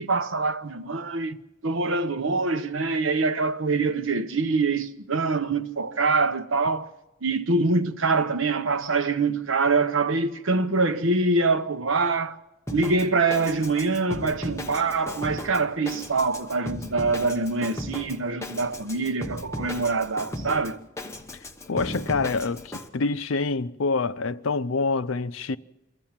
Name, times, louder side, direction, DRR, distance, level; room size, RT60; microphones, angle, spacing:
voice 1, 0.0-1.4 1.6-6.9 7.2-12.4 12.7-20.8, right 3 dB, 70° right, 0.9 m, -24 dB
Drum kit, 12.7-22.9, left 1 dB, 15° left, 0.9 m, -36 dB
voice 2, 21.7-25.6, left 4 dB, 75° left, 0.6 m, -26 dB
24.0 x 14.5 x 7.4 m
head